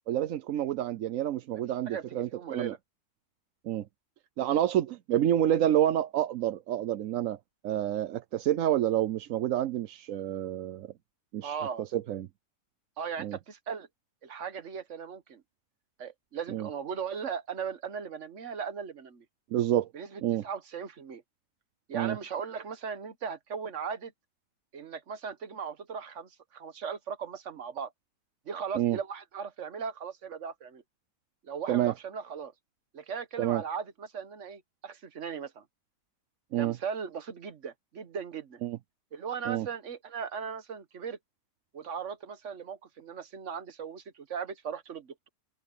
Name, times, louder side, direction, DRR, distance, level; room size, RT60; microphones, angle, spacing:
voice 1, 0.1-2.7 3.6-3.9 4.4-7.4 7.6-10.9 11.3-12.3 13.2-13.4 16.5-16.7 19.5-19.9 20.2-20.4 21.9-22.2 28.7-29.0 31.7-31.9 33.4-33.6 36.5-36.8 38.6-38.8 39.5-39.7, right 11 dB, 85° right, 1.1 m, -28 dB
voice 2, 1.9-2.8 11.4-11.8 13.0-13.9 14.2-15.4 16.0-19.2 19.9-21.2 21.9-24.1 24.7-27.9 28.5-30.8 31.4-32.5 32.9-35.6 36.6-38.6 39.1-41.2 41.7-45.3, right 6 dB, 70° right, 1.5 m, -38 dB
omnidirectional pair, 1.3 m